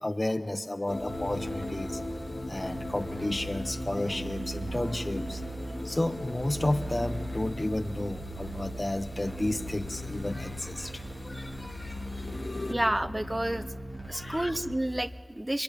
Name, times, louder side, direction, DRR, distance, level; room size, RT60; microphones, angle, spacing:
voice 1, 0.0-1.9 2.5-5.4 5.8-12.0 14.1-14.5, left 1 dB, 35° left, 11 dB, 1.1 m, -32 dB
sound 1, 0.9-12.7, left 2 dB, 70° left, 1.3 m, -40 dB
sound 2, 1.1-14.8, right 1 dB, 55° right, 4.1 m, -39 dB
voice 2, 12.7-13.7 14.1-15.6, right 1 dB, 25° right, 15 dB, 0.7 m, -30 dB
24.0 x 22.5 x 9.9 m, 2.2 s
wide cardioid pair, 45°, 0 cm